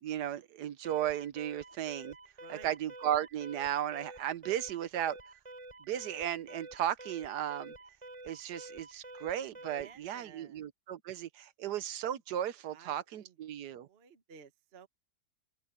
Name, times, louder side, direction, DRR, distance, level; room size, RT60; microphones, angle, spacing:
voice 1, 0.0-2.1 2.5-5.2 5.9-7.7 8.2-13.9, right 11 dB, 75° right, 1.4 m, -35 dB
Alarm, 0.8-10.1, right 2 dB, 20° right, 6.3 m, -49 dB
voice 2, 2.4-2.8 9.8-10.7 12.7-13.4 13.7-14.9, right 7 dB, 40° right, 1.3 m, -55 dB
open air
omnidirectional pair, 1.8 m